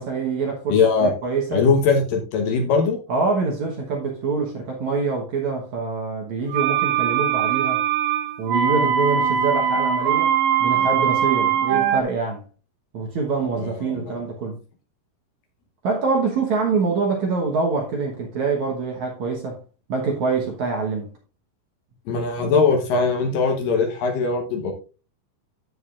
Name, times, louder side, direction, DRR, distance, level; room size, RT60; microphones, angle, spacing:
voice 1, 0.0-1.6 3.1-7.8 8.4-12.4 12.9-14.6 15.8-19.6 19.9-21.1, right 4 dB, 60° right, 2.0 m, -25 dB
voice 2, 0.7-1.1 1.5-3.0 13.6-14.2 22.1-24.7, left 4 dB, 70° left, 2.5 m, -20 dB
sound 1, 6.5-12.0, right 8 dB, 85° right, 2.8 m, -21 dB
14.5 x 4.9 x 2.5 m
omnidirectional pair, 4.7 m